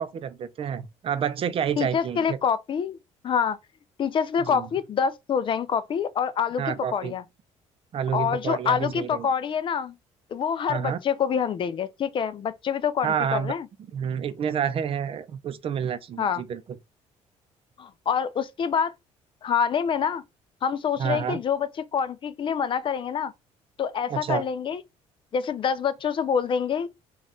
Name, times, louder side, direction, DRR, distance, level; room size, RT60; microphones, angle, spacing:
voice 1, 0.0-2.4 4.5-4.7 6.6-7.1 7.9-9.3 10.7-11.0 13.0-13.6 13.9-16.6 21.0-21.4 24.1-24.4, right 8 dB, 45° right, 0.6 m, -29 dB
voice 2, 1.8-3.0 3.2-3.6 4.0-7.2 8.1-10.0 10.3-13.7 16.2-16.4 17.8-18.9 19.4-20.2 20.6-23.3 23.8-24.8 25.3-26.9, left 7 dB, 40° left, 0.4 m, -26 dB
4.1 x 2.4 x 3.6 m
cardioid pair, 110°, 13 cm